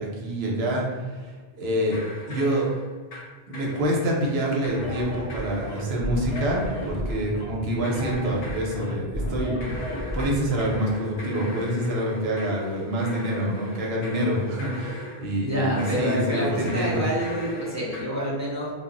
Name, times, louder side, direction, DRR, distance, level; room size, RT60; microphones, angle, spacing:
voice 1, 0.0-2.0 2.3-2.7 3.5-17.0, right 1 dB, 75° right, -2 dB, 0.9 m, -27 dB
sound 1, 1.9-3.3 3.5-4.3 4.6-6.0 6.4-7.4 7.8-9.0 9.6-15.3 15.8-18.0, left 2 dB, 70° left, 0.8 m, -38 dB
sound 2, 4.7-10.7, equal, 45° left, 0.4 m, -32 dB
voice 2, 15.4-18.7, equal, 20° right, -6 dB, 0.5 m, -27 dB
2.2 x 2.0 x 3.7 m, 1.4 s
omnidirectional pair, 1.1 m